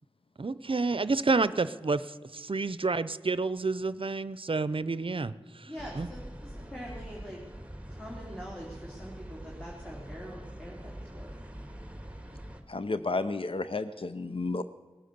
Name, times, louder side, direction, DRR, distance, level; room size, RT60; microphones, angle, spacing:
voice 1, 0.4-2.0 2.3-5.3 5.6-5.7 6.0-6.1, right 3 dB, 60° right, 16 dB, 0.6 m, -29 dB
voice 2, 5.6-7.4 7.9-11.3, equal, 10° left, -4 dB, 3.0 m, -44 dB
sound 1, 5.8-12.6, right 1 dB, 15° right, 1.8 m, -44 dB
voice 3, 12.7-14.6, left 3 dB, 65° left, 12 dB, 0.6 m, -32 dB
19.0 x 9.1 x 6.8 m, 1.4 s
wide cardioid pair, 50°, 10 cm